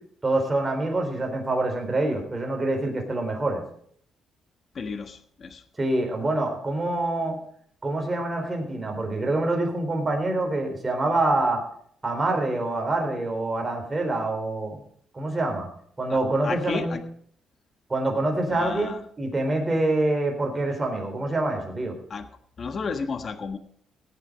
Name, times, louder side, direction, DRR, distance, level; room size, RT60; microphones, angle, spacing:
voice 1, 0.2-3.6 5.8-7.4 7.8-11.6 12.0-14.8 15.1-15.7 16.0-17.0 17.9-21.9, right 2 dB, 20° right, 3 dB, 4.2 m, -26 dB
voice 2, 4.7-5.6 16.1-17.0 18.5-19.0 22.1-22.3 22.6-23.6, left 5 dB, 45° left, 9 dB, 1.4 m, -33 dB
17.0 x 8.7 x 5.1 m, 0.62 s
cardioid pair, 90°, 0 cm